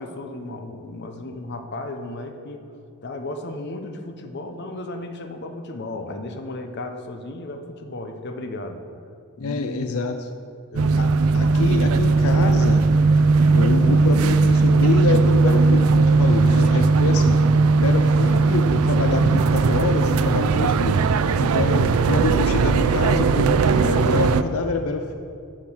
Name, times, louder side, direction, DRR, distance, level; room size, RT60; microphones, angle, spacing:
voice 1, 0.0-2.6 3.0-8.8 9.4-9.9 10.7-11.0 11.3-11.8 17.2-17.9 21.6-21.8, left 2 dB, 50° left, 5 dB, 0.8 m, -35 dB
voice 2, 9.4-10.3 11.0-11.1 11.3-12.9 13.5-17.4 17.8-21.0 21.4-25.2, left 4 dB, 80° left, 6 dB, 0.5 m, -26 dB
sound 1, 10.8-24.4, right 4 dB, 85° right, 0.4 m, -18 dB
8.8 x 6.0 x 6.2 m, 2.4 s
head